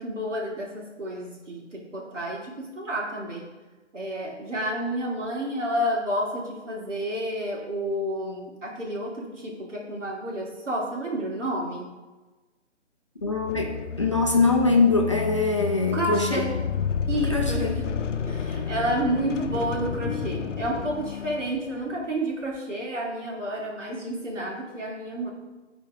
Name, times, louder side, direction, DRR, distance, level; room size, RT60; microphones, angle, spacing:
voice 1, 0.0-3.5 3.9-11.9 15.9-16.5 17.1-17.9 18.3-25.3, right 1 dB, 85° right, -3 dB, 2.7 m, -30 dB
sound 1, 13.2-22.0, left 6 dB, 85° left, 0.6 m, -31 dB
voice 2, 13.2-16.4 17.3-17.7, left 3 dB, 25° left, 1 dB, 0.5 m, -23 dB
13.5 x 4.5 x 3.6 m, 1.2 s
hypercardioid pair, 165°, 36 cm